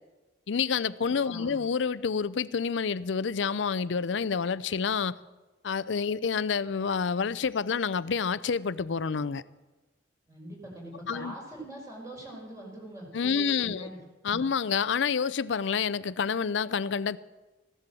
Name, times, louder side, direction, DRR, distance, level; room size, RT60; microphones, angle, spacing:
voice 1, 0.5-5.1 5.6-9.4 11.1-11.3 13.1-13.9 14.2-17.2, left 6 dB, 75° left, 0.5 m, -28 dB
voice 2, 1.1-1.5 10.3-14.0 14.3-14.4, right 1 dB, 15° right, 4.7 m, -43 dB
15.5 x 10.5 x 7.6 m
head